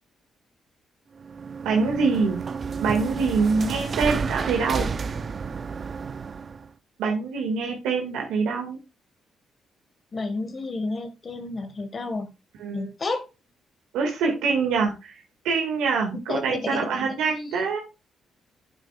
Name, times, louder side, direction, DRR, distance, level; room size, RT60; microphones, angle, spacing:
sound 1, 1.2-6.7, right 5 dB, 45° right, 0.5 m, -31 dB
voice 1, 1.7-2.4 2.8-4.9 7.0-8.8 12.6-12.9 13.9-17.8, right 4 dB, 85° right, 1 dB, 1.8 m, -25 dB
voice 2, 10.1-12.3 12.7-13.3 16.1-16.9, left 3 dB, 40° left, 8 dB, 1.4 m, -31 dB
9.0 x 7.8 x 2.3 m, 0.27 s
supercardioid pair, 60°, 0 cm